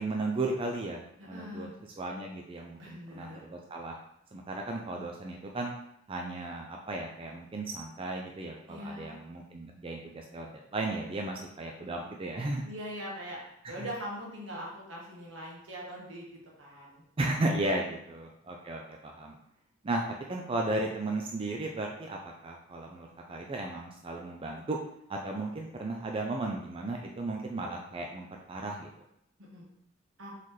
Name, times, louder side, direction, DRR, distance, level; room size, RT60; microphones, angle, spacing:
voice 1, 0.0-1.7 2.0-3.9 4.3-5.7 6.1-12.6 13.6-13.7 17.2-19.4 19.8-20.0 20.3-24.8 25.1-28.9, right 2 dB, 30° right, 1 dB, 0.4 m, -35 dB
voice 2, 1.2-1.7 2.8-3.4 8.7-9.1 12.6-13.4 13.7-16.3 16.6-17.0 29.4-29.7 30.2-30.3, equal, 75° right, -3 dB, 1.4 m, -41 dB
4.1 x 4.0 x 3.2 m, 0.76 s
head